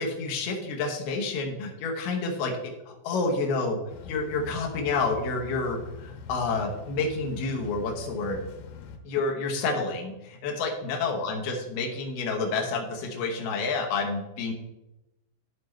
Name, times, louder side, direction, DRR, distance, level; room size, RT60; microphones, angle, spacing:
voice 1, 0.0-2.5 2.9-3.8 4.0-8.4 9.0-14.5, left 3 dB, 70° left, 1 dB, 2.7 m, -29 dB
sound 1, 3.9-9.0, left 5 dB, 90° left, 3.4 m, -43 dB
12.5 x 6.8 x 3.2 m, 0.97 s
omnidirectional pair, 5.5 m